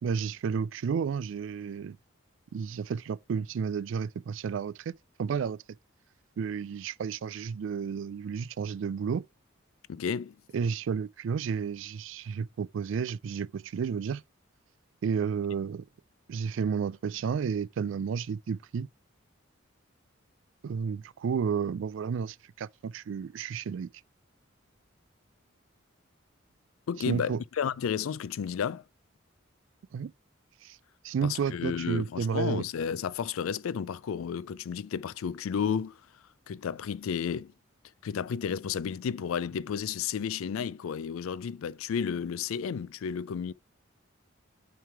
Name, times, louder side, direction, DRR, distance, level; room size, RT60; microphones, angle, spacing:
voice 1, 0.0-2.0 2.5-4.9 5.2-5.6 6.4-9.3 10.5-14.2 15.0-15.8 16.3-18.9 20.6-23.9 27.1-27.4 29.9-30.1 30.6-30.8 31.0-32.6, right 6 dB, 65° right, 0.3 m, -31 dB
voice 2, 9.9-10.3 26.9-28.8 31.3-35.9 36.5-37.5 38.0-43.5, left 7 dB, 85° left, 0.4 m, -32 dB
9.0 x 3.2 x 4.6 m
head